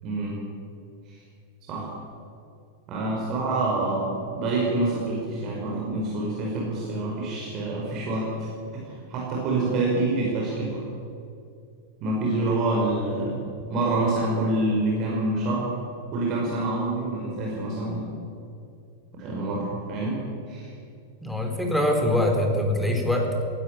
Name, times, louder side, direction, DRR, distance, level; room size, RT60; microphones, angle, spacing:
voice 1, 0.0-0.4 1.7-1.9 2.9-8.5 8.7-8.8 9.1-10.8 12.0-13.4 13.7-15.7 16.1-18.1 19.1-20.2 20.5-20.7, right 2 dB, 35° right, -3 dB, 5.3 m, -26 dB
voice 2, 21.2-23.4, left 1 dB, 5° left, 2 dB, 3.8 m, -24 dB
18.0 x 14.5 x 10.0 m, 2.6 s
figure-of-eight pair, 90°, 0 cm